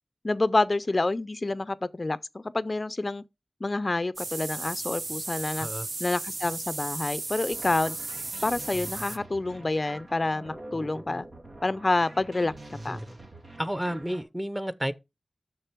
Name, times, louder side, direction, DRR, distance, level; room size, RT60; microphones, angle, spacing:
voice 1, 0.2-3.2 3.6-5.7 6.0-8.0 8.4-11.3 11.6-12.5 12.8-13.0, left 2 dB, 45° left, 0.4 m, -28 dB
sound 1, 4.2-9.2, right 3 dB, 65° right, 0.6 m, -35 dB
sound 2, 7.5-14.2, right 1 dB, 85° right, 2.3 m, -45 dB
voice 2, 13.6-14.9, equal, 10° right, 0.7 m, -31 dB
6.6 x 6.6 x 4.5 m
wide cardioid pair, 70°, 0 cm